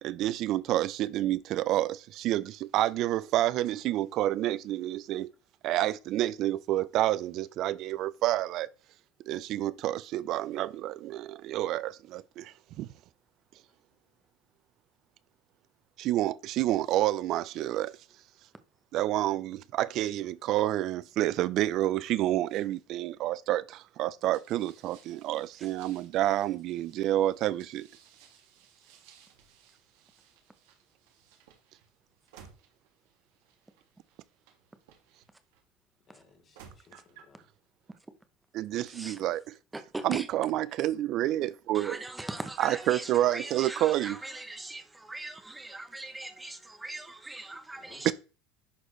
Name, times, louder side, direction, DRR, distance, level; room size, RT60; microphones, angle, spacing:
voice 1, 0.0-5.3 5.6-8.7 9.3-12.9 16.0-17.9 18.9-27.9 38.5-39.4 40.0-42.0 42.6-44.2 48.0-48.1, right 14 dB, 45° right, 0.5 m, -29 dB
sound 1, 24.3-35.6 36.3-37.4, right 7 dB, 85° right, 2.0 m, -59 dB
voice 2, 36.1-37.4 47.8-48.1, left 4 dB, 30° left, 2.6 m, -59 dB
voice 3, 38.8-39.3 39.7-40.3 41.7-48.1, right 2 dB, 10° right, 0.8 m, -40 dB
11.0 x 4.2 x 3.2 m
supercardioid pair, 145°, 0 cm